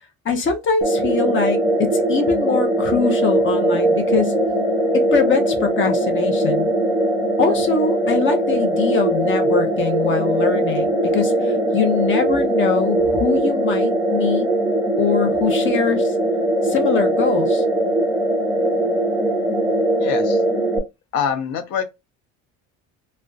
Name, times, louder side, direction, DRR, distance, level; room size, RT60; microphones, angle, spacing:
voice 1, 0.2-4.3 4.9-6.7 7.4-14.5 15.0-16.1 16.6-17.6, left 5 dB, 35° left, 0.7 m, -22 dB
sound 1, 0.8-20.8, right 1 dB, 5° right, 0.4 m, -20 dB
voice 2, 20.0-20.4 21.1-21.8, left 7 dB, 75° left, 0.7 m, -24 dB
2.4 x 2.1 x 2.3 m
cardioid pair, 125°, 34 cm